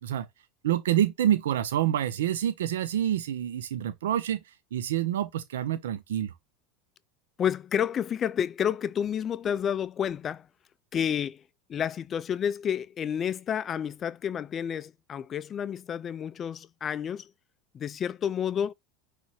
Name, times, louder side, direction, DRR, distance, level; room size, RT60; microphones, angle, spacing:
voice 1, 0.6-6.3, right 11 dB, 85° right, 0.4 m, -27 dB
voice 2, 7.4-10.5 10.9-11.4 11.7-17.3 17.7-18.7, left 8 dB, 35° left, 0.3 m, -30 dB
5.4 x 3.2 x 2.7 m
supercardioid pair, 105°, 0 cm